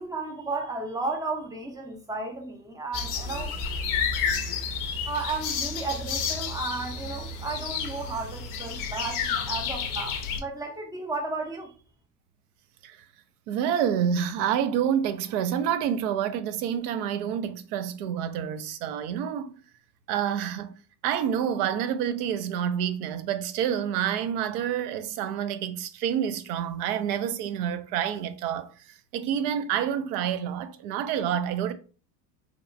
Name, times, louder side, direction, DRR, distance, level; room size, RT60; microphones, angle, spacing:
voice 1, 0.0-3.6 5.1-11.7, right 3 dB, 10° right, 0.5 m, -33 dB
sound 1, 2.9-10.4, left 6 dB, 45° left, 0.5 m, -31 dB
voice 2, 13.5-19.5 20.1-20.7 21.0-31.7, right 9 dB, 65° right, 0.5 m, -28 dB
2.9 x 2.1 x 2.5 m
hypercardioid pair, 95°, 48 cm